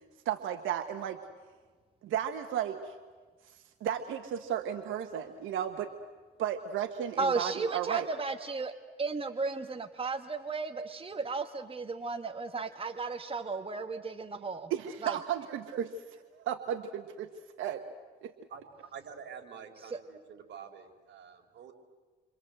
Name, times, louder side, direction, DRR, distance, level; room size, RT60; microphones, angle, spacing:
voice 1, 0.2-1.2 2.0-2.9 3.5-5.9 6.4-8.1 14.7-15.9 16.3-17.3 17.6-17.8 18.2-18.3, right 10 dB, 85° right, 8 dB, 1.3 m, -34 dB
voice 2, 7.2-8.7 9.0-14.7 15.0-15.2 19.8-20.0, right 4 dB, 30° right, 7 dB, 1.5 m, -34 dB
voice 3, 18.9-21.7, right 7 dB, 65° right, 4 dB, 4.2 m, -47 dB
28.5 x 25.0 x 7.9 m, 1.5 s
cardioid pair, 90°, 20 cm